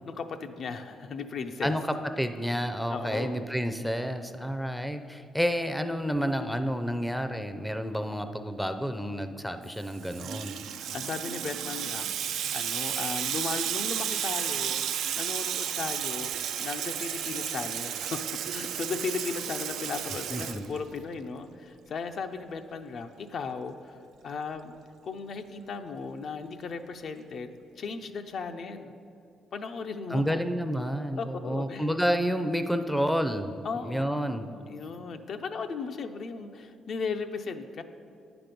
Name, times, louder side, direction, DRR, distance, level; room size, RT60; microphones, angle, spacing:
voice 1, 0.1-1.7 2.9-3.4 10.6-24.8 25.0-28.9 29.5-30.4 31.2-31.9 33.6-37.8, left 5 dB, 60° left, 7 dB, 0.5 m, -36 dB
voice 2, 1.6-10.6 20.3-20.7 30.1-33.5 33.8-34.5, equal, 5° left, 8 dB, 0.5 m, -30 dB
Water tap faucet / Sink (filling or washing), 9.7-21.2, right 9 dB, 80° right, 0.4 m, -33 dB
9.1 x 6.0 x 5.2 m, 2.5 s
cardioid pair, 90°, 0 cm